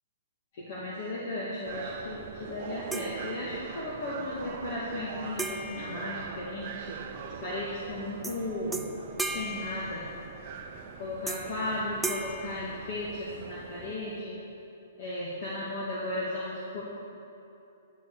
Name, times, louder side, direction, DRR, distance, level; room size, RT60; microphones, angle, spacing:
voice 1, 0.5-7.1 7.4-8.8 9.3-10.0 11.0-14.4 15.0-16.8, left 1 dB, 45° left, -5 dB, 1.8 m, -35 dB
sound 1, 1.6-13.9, right 6 dB, 35° right, 0.7 m, -43 dB
sound 2, 2.9-3.9 5.4-7.0 8.2-8.4 8.7-10.5 11.3-11.7 12.0-13.5, right 2 dB, 5° right, 0.4 m, -38 dB
11.5 x 6.8 x 6.7 m, 2.8 s
hypercardioid pair, 160°, 0 cm